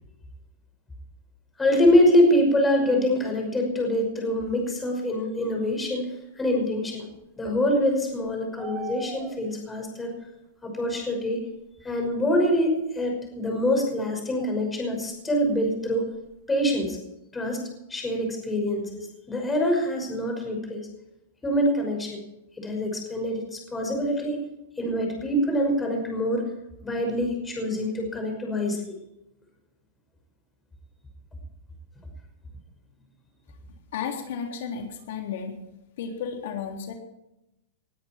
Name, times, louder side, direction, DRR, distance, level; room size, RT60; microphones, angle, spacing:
voice 1, 1.6-6.1 6.4-7.1 7.4-10.1 10.6-11.4 11.8-16.1 16.5-17.0 17.3-17.6 17.9-20.8 21.4-22.2 22.6-24.4 24.8-26.4 26.8-29.0, left 1 dB, 10° left, 2 dB, 5.7 m, -25 dB
sound 1, 8.1-9.7 12.1-12.2 14.4-14.8 15.1-15.2 15.4-16.4, right 5 dB, 15° right, 2.0 m, -40 dB
voice 2, 33.9-35.6 36.0-36.9, left 7 dB, 70° left, 3 dB, 3.4 m, -33 dB
20.5 x 13.0 x 4.5 m, 0.88 s
supercardioid pair, 150°, 0 cm